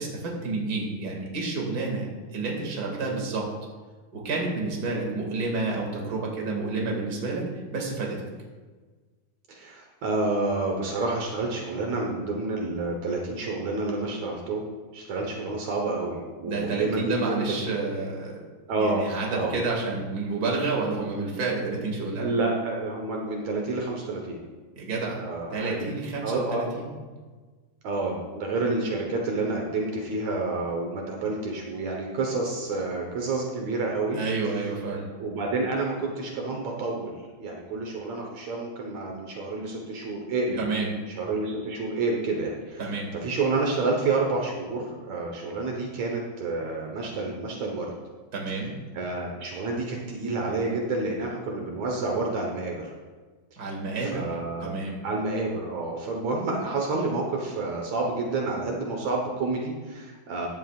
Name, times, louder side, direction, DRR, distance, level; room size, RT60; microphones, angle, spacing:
voice 1, 0.0-3.5 4.1-8.2 16.4-18.3 18.8-22.3 24.8-25.2 25.5-26.9 34.1-35.0 40.6-40.9 42.8-43.1 48.3-48.7 53.6-54.2 54.6-55.0, right 3 dB, 35° right, -1 dB, 2.3 m, -29 dB
voice 2, 9.5-14.6 14.9-17.5 18.7-19.5 22.2-24.4 25.2-25.8 26.2-26.6 27.8-34.2 35.2-40.6 41.2-47.9 48.9-52.9 54.0-54.7 55.0-60.5, right 3 dB, 70° right, 0 dB, 2.4 m, -29 dB
14.5 x 11.0 x 2.5 m, 1.4 s
omnidirectional pair, 3.4 m